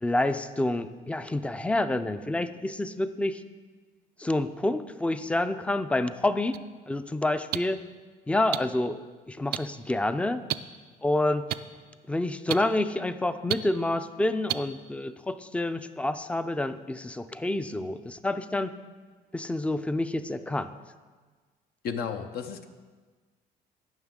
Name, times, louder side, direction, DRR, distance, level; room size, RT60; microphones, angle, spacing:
voice 1, 0.0-3.4 4.2-6.6 6.9-7.8 8.3-9.0 9.3-10.4 11.0-11.4 12.1-18.7 19.3-20.7, left 1 dB, 5° left, 12 dB, 0.4 m, -28 dB
sound 1, 6.5-6.6 7.5-7.6 8.5-8.6 9.5-9.6 10.5-10.6 11.5-11.6 12.5-12.6 13.5-13.6 14.5-14.6, right 14 dB, 65° right, 0.4 m, -27 dB
voice 2, 21.8-22.7, left 6 dB, 65° left, 7 dB, 0.7 m, -33 dB
16.5 x 5.9 x 3.7 m, 1.4 s
cardioid pair, 110°, 17 cm